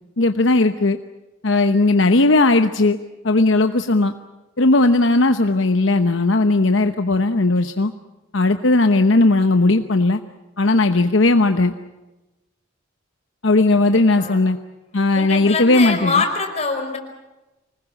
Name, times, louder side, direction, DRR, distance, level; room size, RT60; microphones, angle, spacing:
voice 1, 0.2-1.0 1.4-3.0 3.2-4.1 4.6-7.9 8.3-10.2 10.6-11.7 13.4-14.6 14.9-16.2, left 2 dB, 70° left, 8 dB, 1.0 m, -17 dB
voice 2, 13.7-14.4 15.1-17.0, left 4 dB, 35° left, 3 dB, 5.1 m, -24 dB
25.5 x 20.0 x 8.6 m, 1.0 s
head